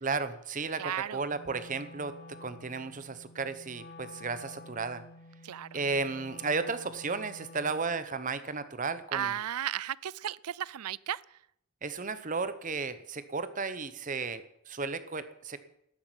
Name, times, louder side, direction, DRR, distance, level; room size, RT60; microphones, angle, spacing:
voice 1, 0.0-5.0 5.7-9.4 11.8-15.6, right 4 dB, 35° right, 0.9 m, -34 dB
voice 2, 0.8-1.2 5.4-5.7 9.1-11.2, right 10 dB, 90° right, 0.5 m, -34 dB
Wind instrument woodwind instrument, 1.3-8.0, left 2 dB, 45° left, 1.8 m, -50 dB
12.5 x 8.4 x 9.9 m
head